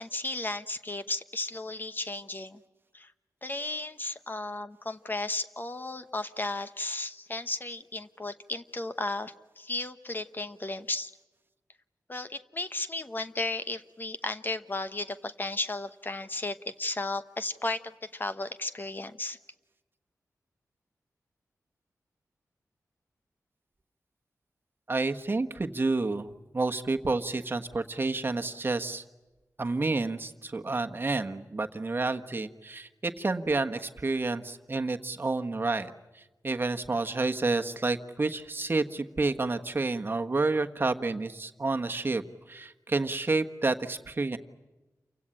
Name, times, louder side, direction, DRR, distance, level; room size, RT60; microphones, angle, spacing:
voice 1, 0.0-2.6 2.9-3.1 3.4-11.1 12.1-19.4, left 2 dB, 30° left, 11 dB, 1.0 m, -34 dB
voice 2, 24.9-29.0 29.6-42.2 42.5-44.4, right 3 dB, 35° right, 6 dB, 1.3 m, -29 dB
29.0 x 16.5 x 9.9 m, 1.1 s
wide cardioid pair, 80°, 6 cm